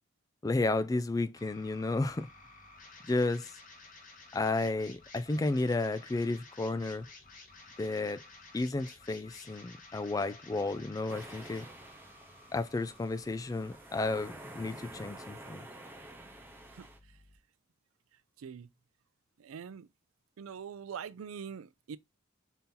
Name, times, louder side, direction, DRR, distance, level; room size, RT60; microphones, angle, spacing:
voice 1, 0.4-2.3 3.1-3.5 4.3-7.1 7.8-8.2 8.5-11.7 12.5-15.7, left 2 dB, 15° left, 0.3 m, -32 dB
sound 1, 1.4-17.4, left 3 dB, 40° left, 0.9 m, -55 dB
sound 2, 11.1-17.0, right 1 dB, 10° right, 0.8 m, -49 dB
voice 2, 18.4-18.7 19.4-19.9 20.4-22.0, right 7 dB, 85° right, 0.4 m, -43 dB
4.1 x 2.8 x 3.7 m
head